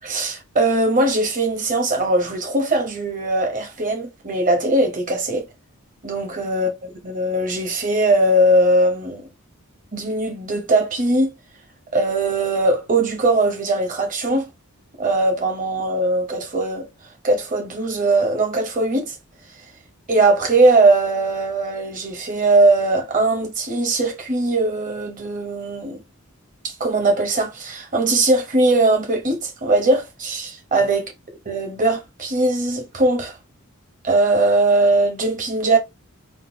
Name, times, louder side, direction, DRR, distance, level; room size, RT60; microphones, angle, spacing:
voice 1, 0.0-5.4 6.0-6.7 7.0-9.3 9.9-11.3 11.9-14.5 15.0-16.9 17.2-19.2 20.1-26.0 26.6-31.0 31.5-33.4 34.0-35.8, right 2 dB, 35° right, 1.0 m, -20 dB
3.7 x 2.4 x 2.7 m
head